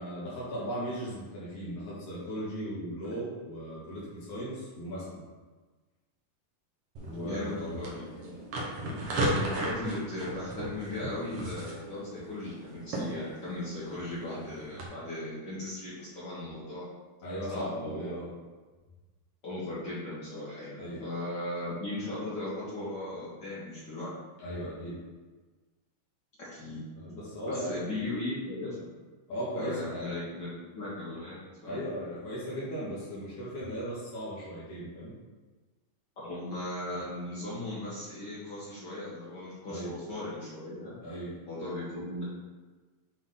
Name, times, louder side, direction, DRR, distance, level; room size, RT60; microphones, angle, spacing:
voice 1, 0.0-5.2 7.0-7.8 17.2-18.3 20.8-21.0 24.4-25.0 26.9-28.0 29.3-30.2 31.6-35.1 39.7-40.0 41.0-41.4, equal, 60° left, -8 dB, 2.9 m, -37 dB
sound 1, 7.0-14.9, right 1 dB, 60° right, 1.7 m, -36 dB
voice 2, 7.1-8.4 9.3-16.9 17.5-18.1 19.4-24.1 26.5-26.8 27.5-28.9 29.5-31.9 36.2-41.0 41.5-42.2, left 1 dB, 45° left, -9 dB, 1.5 m, -37 dB
8.1 x 3.7 x 3.9 m, 1.3 s
omnidirectional pair, 3.9 m